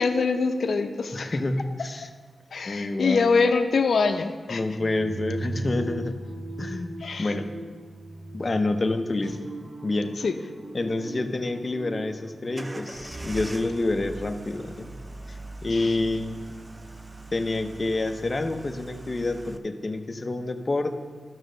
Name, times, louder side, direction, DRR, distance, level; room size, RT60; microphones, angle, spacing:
voice 1, 0.0-1.3 2.5-4.6 7.0-7.3 10.2-10.3 15.7-15.9, left 4 dB, 80° left, 7 dB, 0.6 m, -24 dB
voice 2, 1.1-2.1 2.6-3.3 4.5-6.2 6.6-7.5 8.3-9.4 9.8-10.2 10.7-14.9 15.3-16.4 17.3-21.0, left 2 dB, 40° left, 7 dB, 0.7 m, -28 dB
sound 1, 4.8-14.7, right 2 dB, 85° right, 1.7 m, -38 dB
sound 2, 12.6-19.6, right 2 dB, 25° right, 0.6 m, -41 dB
12.0 x 6.5 x 3.9 m, 1.5 s
cardioid pair, 65°, 0 cm